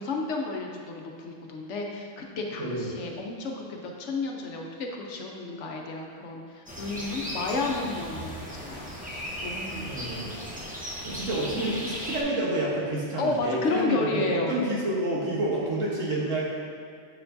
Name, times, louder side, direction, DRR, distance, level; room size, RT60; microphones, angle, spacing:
voice 1, 0.0-10.2 13.2-14.5, left 3 dB, 70° left, 0 dB, 1.1 m, -32 dB
voice 2, 2.6-3.0 9.9-10.4 11.0-16.4, right 1 dB, 85° right, -5 dB, 1.6 m, -29 dB
sound 1, 6.7-12.2, equal, 10° right, 0.8 m, -36 dB
6.6 x 6.5 x 2.7 m, 2.1 s
omnidirectional pair, 1.3 m